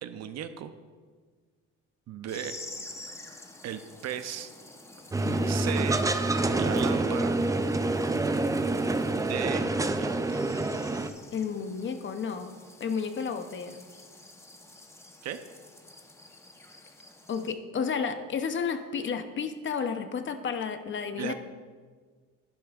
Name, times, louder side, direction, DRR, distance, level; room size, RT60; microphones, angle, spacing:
voice 1, 0.0-0.7 2.1-2.5 3.6-4.5 5.4-6.0 6.6-7.4 9.2-9.7 10.0-10.6 15.2-15.4 21.2-21.3, right 10 dB, 55° right, 10 dB, 0.7 m, -36 dB
sound 1, 2.3-17.5, left 2 dB, 10° left, 0.9 m, -49 dB
sound 2, 5.1-11.1, right 2 dB, 10° right, 0.5 m, -27 dB
voice 2, 11.3-12.5 12.8-13.8 17.3-21.3, left 6 dB, 40° left, 8 dB, 0.8 m, -32 dB
11.5 x 9.8 x 2.5 m, 1.5 s
cardioid pair, 100°, 31 cm